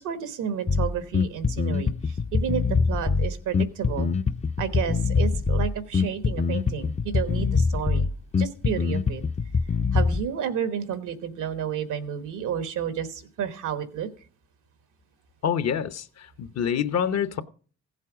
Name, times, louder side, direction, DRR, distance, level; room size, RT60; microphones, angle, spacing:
voice 1, 0.0-4.1 4.6-8.1 8.4-9.2 9.9-14.1, right 8 dB, 85° right, 1.3 m, -31 dB
Bass guitar, 0.7-10.3, left 5 dB, 20° left, 0.5 m, -24 dB
voice 2, 15.4-17.4, left 8 dB, 60° left, 0.8 m, -26 dB
15.5 x 7.5 x 4.9 m
cardioid pair, 90°, 30 cm